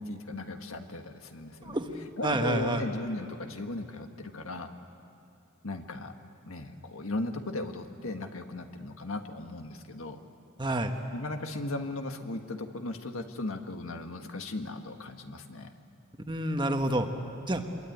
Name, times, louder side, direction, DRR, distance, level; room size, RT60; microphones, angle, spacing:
voice 1, 0.0-1.8 2.2-4.7 5.6-6.1 6.5-10.2 11.1-15.7, left 2 dB, 70° left, 6 dB, 1.6 m, -37 dB
voice 2, 2.2-2.8 10.6-10.9 16.3-17.1 17.5-17.6, right 1 dB, 20° right, 5 dB, 1.4 m, -28 dB
25.5 x 22.5 x 9.4 m, 2.6 s
head